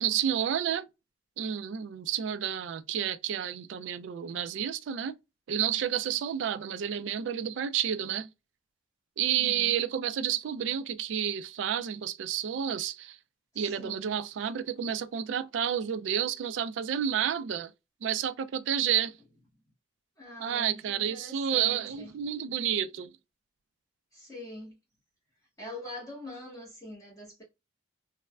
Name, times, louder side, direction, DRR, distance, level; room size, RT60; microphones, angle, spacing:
voice 1, 0.0-0.9 1.4-5.2 5.5-8.3 9.2-13.2 13.6-17.7 18.0-19.1 20.4-23.1, right 9 dB, 75° right, 0.3 m, -30 dB
voice 2, 9.2-9.8 13.5-14.1 20.2-22.1 24.1-24.8 25.6-27.4, left 1 dB, 20° left, 0.9 m, -44 dB
3.1 x 2.1 x 2.3 m
head